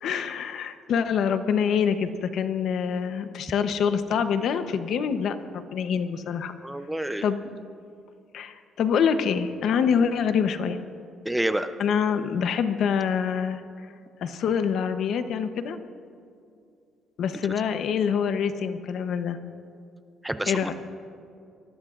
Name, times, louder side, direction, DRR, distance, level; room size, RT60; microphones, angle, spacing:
voice 1, 0.0-6.5 7.2-7.4 8.3-10.8 11.8-13.6 14.2-15.8 17.2-19.4 20.5-20.7, left 7 dB, 60° left, 9 dB, 0.8 m, -25 dB
voice 2, 6.6-7.2 11.2-11.7 20.2-20.7, right 1 dB, 5° right, 9 dB, 0.5 m, -28 dB
25.0 x 20.0 x 2.5 m, 2.5 s
cardioid pair, 150°, 0 cm